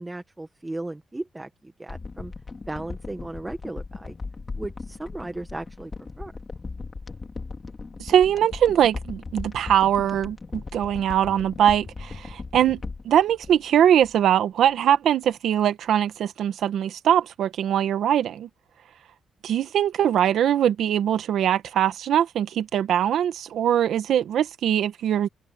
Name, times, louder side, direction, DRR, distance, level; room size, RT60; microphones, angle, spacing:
voice 1, 0.0-2.3 2.7-4.1 4.6-5.9 6.2-6.3, right 2 dB, 15° right, 1.4 m, -36 dB
sound 1, 1.9-14.3 14.6-14.7, left 4 dB, 30° left, 2.9 m, -38 dB
voice 2, 8.0-18.5 19.4-25.3, right 10 dB, 75° right, 1.6 m, -22 dB
cardioid pair, 120°, 0 cm